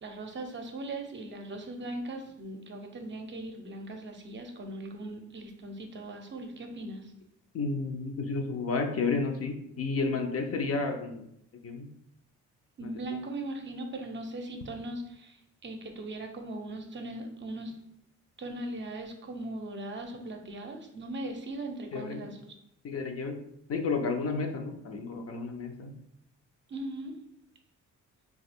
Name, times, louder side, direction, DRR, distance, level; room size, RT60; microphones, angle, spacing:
voice 1, 0.0-7.1 12.8-17.8 18.4-22.5 26.7-27.1, right 2 dB, 40° right, 4 dB, 0.6 m, -39 dB
voice 2, 7.5-11.2 11.6-11.9 12.8-13.0 21.9-22.2 22.8-23.4 23.7-25.9, left 4 dB, 50° left, 4 dB, 0.6 m, -31 dB
2.8 x 2.3 x 4.2 m, 0.75 s
cardioid pair, 90°, 30 cm